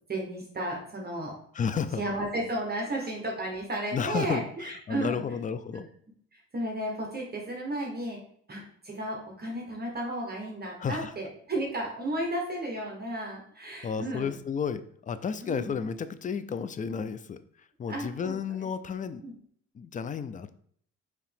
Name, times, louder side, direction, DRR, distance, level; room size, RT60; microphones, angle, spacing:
voice 1, 0.1-1.3 2.0-5.2 6.3-8.2 8.5-14.4 15.4-15.7 17.9-18.7 19.2-19.3, right 1 dB, 30° right, -1 dB, 1.1 m, -33 dB
voice 2, 1.5-2.0 3.9-5.9 10.8-11.1 13.8-19.2 19.7-20.5, left 6 dB, 25° left, 12 dB, 0.3 m, -32 dB
4.6 x 2.9 x 3.4 m, 0.63 s
cardioid pair, 90°, 30 cm